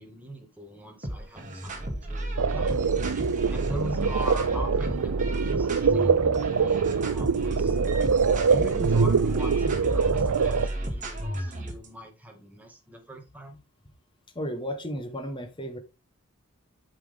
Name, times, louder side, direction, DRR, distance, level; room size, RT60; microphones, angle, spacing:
voice 1, 0.0-2.7 3.5-7.8 8.4-13.6, equal, 5° right, 2.0 m, -40 dB
sound 1, 1.0-11.9, right 1 dB, 35° right, 2.1 m, -32 dB
sound 2, 2.4-10.7, right 5 dB, 90° right, 0.5 m, -24 dB
voice 2, 14.3-15.8, equal, 20° left, 1.3 m, -33 dB
8.6 x 6.0 x 3.6 m
head